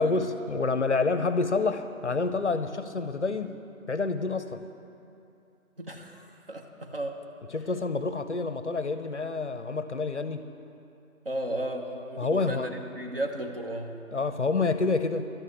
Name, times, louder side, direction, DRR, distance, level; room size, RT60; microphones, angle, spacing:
voice 1, 0.0-3.6 3.9-4.6 7.5-10.5 12.2-12.7 14.1-15.3, left 3 dB, 55° left, 11 dB, 0.6 m, -28 dB
voice 2, 5.8-7.2 11.2-14.0, right 1 dB, 40° right, 3 dB, 1.0 m, -35 dB
12.0 x 8.5 x 8.3 m, 2.7 s
figure-of-eight pair, 170°, 43 cm